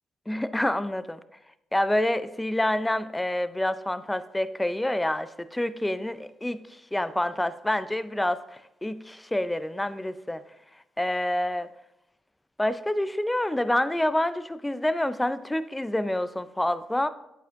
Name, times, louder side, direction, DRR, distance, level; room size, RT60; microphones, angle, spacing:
voice 1, 0.3-1.2 1.7-10.4 11.0-11.7 12.6-17.1, left 1 dB, 10° left, 14 dB, 0.4 m, -27 dB
8.3 x 8.2 x 2.6 m, 0.85 s
supercardioid pair, 60°, 0 cm